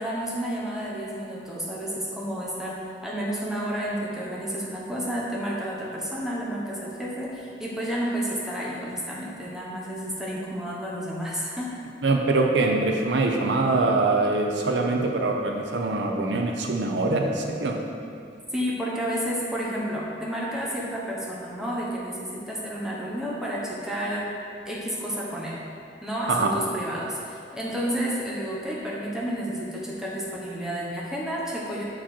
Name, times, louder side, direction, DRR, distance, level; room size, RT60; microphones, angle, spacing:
voice 1, 0.0-11.7 18.5-24.3 24.7-25.6 26.0-31.8, equal, 5° right, -5 dB, 1.0 m, -31 dB
voice 2, 12.0-17.7 26.3-26.5, right 3 dB, 70° right, 2 dB, 0.6 m, -23 dB
7.3 x 4.9 x 4.4 m, 2.4 s
head